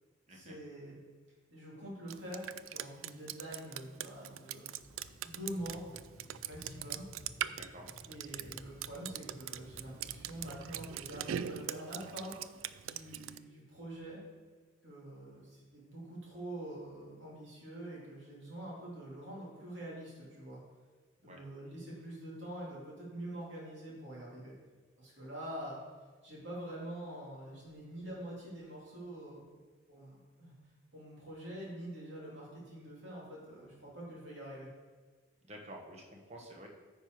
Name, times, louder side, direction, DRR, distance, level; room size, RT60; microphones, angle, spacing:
voice 1, 0.3-1.0 1.5-4.7 5.2-5.8 6.4-7.0 8.1-12.3 12.8-14.2 14.8-20.6 21.2-24.5 25.0-25.8 26.2-29.4 29.9-30.5 30.9-34.7, right 1 dB, 60° right, -5 dB, 2.8 m, -45 dB
Drip, 2.1-13.4, right 11 dB, 80° right, 0.3 m, -42 dB
sound 1, 4.8-11.6, equal, 55° left, 1.0 m, -55 dB
voice 2, 7.5-7.9 21.2-21.4 35.4-36.7, right 1 dB, 30° right, 1 dB, 1.1 m, -50 dB
9.7 x 5.4 x 4.6 m, 1.4 s
head